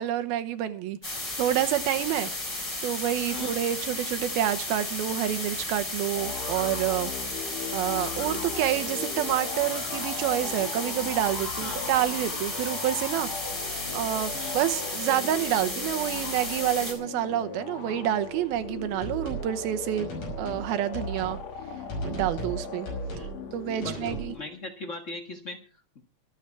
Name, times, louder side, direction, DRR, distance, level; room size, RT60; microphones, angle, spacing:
voice 1, 0.0-13.7 13.9-20.1 20.4-21.4 22.0-22.9 23.5-24.3, right 12 dB, 85° right, 2.8 m, -28 dB
sound 1, 1.0-16.9, left 2 dB, 20° left, 4.6 m, -34 dB
sound 2, 6.1-24.6, left 5 dB, 50° left, 3.0 m, -38 dB
sound 3, 19.0-19.5 20.0-20.7 20.9-21.4 21.9-22.6 22.9-23.3 23.8-24.3, right 1 dB, 70° left, 7.5 m, -35 dB
voice 2, 23.8-26.0, left 2 dB, 85° left, 0.6 m, -40 dB
24.0 x 8.1 x 4.7 m
omnidirectional pair, 4.2 m